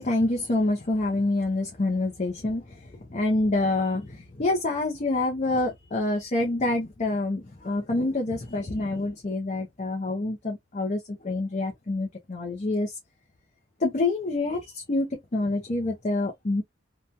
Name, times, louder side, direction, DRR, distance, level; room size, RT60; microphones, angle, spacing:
voice 1, 0.0-2.6 3.1-12.9 13.8-16.6, left 2 dB, 35° left, 0.7 m, -27 dB
2.9 x 2.3 x 2.6 m
head